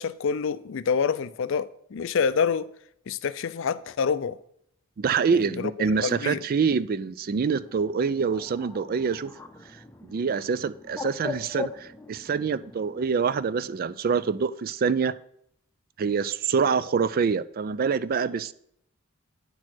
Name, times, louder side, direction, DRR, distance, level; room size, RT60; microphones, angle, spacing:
voice 1, 0.0-2.7 3.1-4.4 5.6-5.7 6.0-6.4, left 6 dB, 60° left, 0.4 m, -27 dB
voice 2, 5.0-9.3 10.0-15.2 16.0-18.5, right 5 dB, 45° right, 0.3 m, -26 dB
Bird, 7.6-13.1, left 4 dB, 10° left, 0.6 m, -40 dB
9.6 x 4.5 x 6.1 m
head